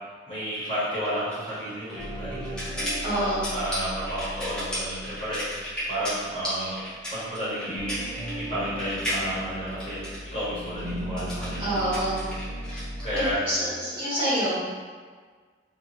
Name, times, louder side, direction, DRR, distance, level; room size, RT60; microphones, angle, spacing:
voice 1, 0.3-3.3 3.5-5.4 5.9-6.7 7.1-8.0 8.4-10.0 10.3-11.8 13.0-13.3, equal, 35° left, -11 dB, 1.1 m, -32 dB
sound 1, 0.5-13.3, equal, 5° left, 0.6 m, -35 dB
sound 2, 1.9-7.2 7.5-13.8, equal, 15° right, 1.2 m, -37 dB
voice 2, 3.0-3.5 11.6-12.3 12.6-12.8 13.1-14.5, right 1 dB, 30° right, -13 dB, 1.3 m, -27 dB
2.9 x 2.4 x 2.7 m, 1.6 s
head